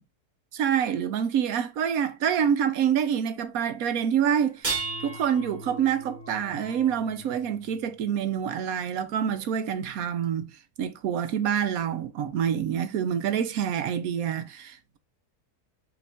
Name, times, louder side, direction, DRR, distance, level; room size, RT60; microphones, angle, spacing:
voice 1, 0.5-4.6 5.0-10.5 10.8-15.0, right 8 dB, 70° right, 1.1 m, -27 dB
sound 1, 4.5-7.7 9.3-9.4 10.2-10.3, right 3 dB, 30° right, 1.1 m, -36 dB
5.2 x 3.0 x 3.4 m
omnidirectional pair, 1.6 m